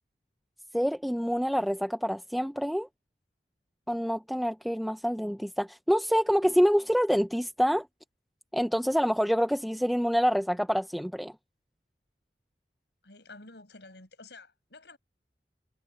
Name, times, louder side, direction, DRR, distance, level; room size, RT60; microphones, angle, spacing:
voice 1, 0.7-2.9 3.9-7.9 8.5-11.3, equal, ahead, 0.6 m, -26 dB
voice 2, 13.0-15.0, left 3 dB, 80° left, 5.6 m, -50 dB
head